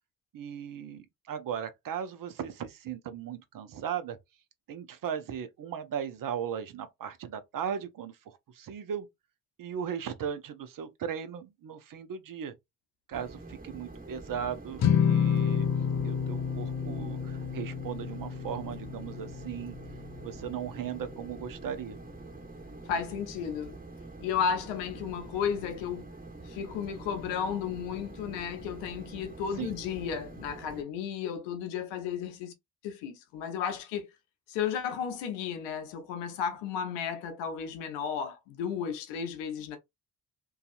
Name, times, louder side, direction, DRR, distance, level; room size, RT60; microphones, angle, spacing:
voice 1, 0.3-4.2 4.7-9.1 9.6-12.6 13.1-15.7 16.0-19.8 20.2-22.0 29.6-29.7, right 8 dB, 50° right, 0.7 m, -37 dB
sound 1, 13.1-30.8, right 2 dB, 20° right, 1.4 m, -46 dB
sound 2, 14.8-21.2, left 7 dB, 40° left, 0.5 m, -30 dB
voice 2, 22.9-23.8 24.2-26.1 26.4-32.5 32.8-34.1 34.5-39.8, left 7 dB, 85° left, 0.7 m, -33 dB
2.6 x 2.3 x 2.4 m
hypercardioid pair, 45°, 42 cm